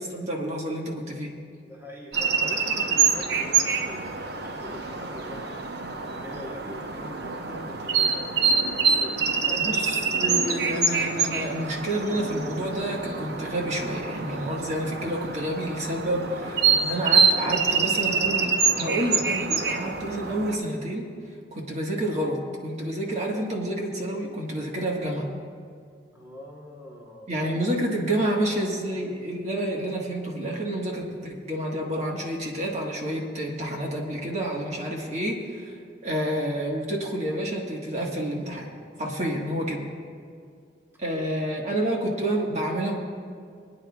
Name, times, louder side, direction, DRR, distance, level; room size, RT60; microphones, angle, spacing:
voice 1, 0.0-1.3 9.6-16.5 16.8-21.1 21.5-25.3 27.3-35.7 36.0-38.7 39.0-39.9 41.0-43.0, right 1 dB, 40° right, -1 dB, 1.6 m, -29 dB
voice 2, 1.6-5.4 6.1-9.6 10.0-10.5 15.9-17.9 26.1-27.3 28.1-28.3 41.1-41.3, left 1 dB, 15° right, -3 dB, 1.2 m, -43 dB
sound 1, 2.1-20.6, right 5 dB, 65° right, 0.8 m, -26 dB
26.5 x 9.4 x 2.4 m, 2.2 s
head